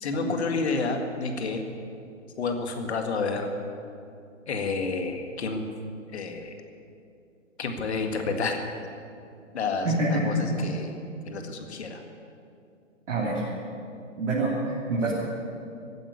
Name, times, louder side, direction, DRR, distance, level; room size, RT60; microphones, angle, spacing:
voice 1, 0.0-1.6 2.4-3.5 4.5-5.7 6.1-6.5 7.6-8.7 9.5-11.0 11.3-12.0, left 4 dB, 55° left, 5 dB, 1.9 m, -30 dB
voice 2, 9.8-10.4 13.1-13.4 14.2-15.1, right 2 dB, 60° right, -6 dB, 3.4 m, -26 dB
16.0 x 9.2 x 9.9 m, 2.5 s
figure-of-eight pair, 130°, 38 cm